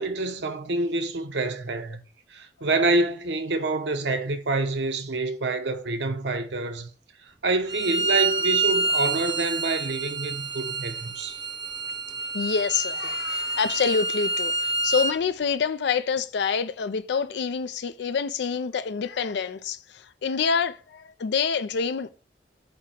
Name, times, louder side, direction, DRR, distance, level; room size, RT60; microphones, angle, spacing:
voice 1, 0.0-2.0 2.3-6.9 7.2-11.4, right 2 dB, 70° right, 0.9 m, -27 dB
Bowed string instrument, 7.7-15.1, right 3 dB, 25° right, 0.7 m, -27 dB
voice 2, 12.3-22.1, left 6 dB, 65° left, 0.4 m, -27 dB
8.5 x 2.9 x 5.9 m
head